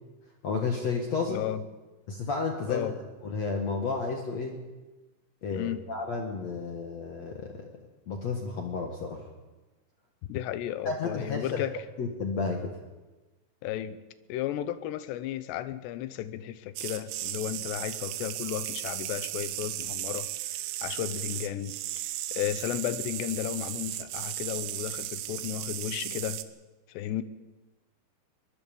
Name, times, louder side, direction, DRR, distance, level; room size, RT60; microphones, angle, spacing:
voice 1, 0.4-1.4 2.1-2.9 3.2-4.6 5.4-7.6 8.1-9.2 10.8-11.6 12.0-12.7, left 4 dB, 60° left, 2 dB, 1.8 m, -32 dB
voice 2, 1.3-1.6 2.7-3.0 5.5-5.9 10.3-11.8 13.6-14.0 14.3-26.4 26.9-27.2, left 12 dB, 75° left, 13 dB, 2.7 m, -34 dB
sound 1, 16.8-26.4, right 14 dB, 90° right, 3.4 m, -36 dB
22.0 x 22.0 x 5.3 m, 1.2 s
omnidirectional pair, 5.5 m